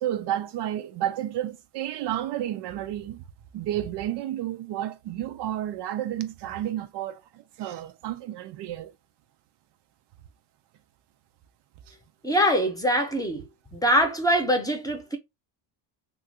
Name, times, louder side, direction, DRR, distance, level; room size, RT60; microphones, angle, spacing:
voice 1, 0.0-3.2 3.5-8.9, right 12 dB, 60° right, 0.5 m, -31 dB
voice 2, 12.2-13.5 13.7-15.2, equal, 10° left, 0.8 m, -23 dB
3.1 x 2.4 x 2.7 m
cardioid pair, 90°, 48 cm